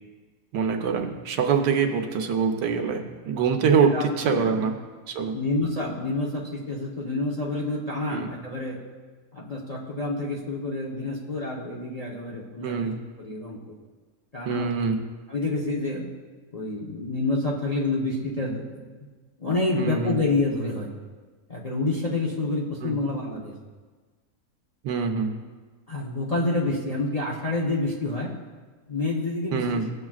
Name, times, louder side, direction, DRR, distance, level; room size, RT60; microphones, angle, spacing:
voice 1, 0.5-4.7 5.1-5.4 8.1-8.4 12.6-13.0 14.4-15.0 19.7-20.2 22.8-23.0 24.8-25.3 29.5-29.9, right 6 dB, 85° right, 4 dB, 1.4 m, -24 dB
voice 2, 4.3-4.7 5.3-8.8 9.3-12.9 13.2-13.7 14.3-14.7 15.3-16.0 16.5-18.8 19.4-20.9 21.5-23.5 25.9-28.3 28.9-29.8, left 2 dB, 30° left, -4 dB, 0.9 m, -28 dB
16.0 x 7.4 x 2.4 m, 1.4 s
omnidirectional pair, 1.8 m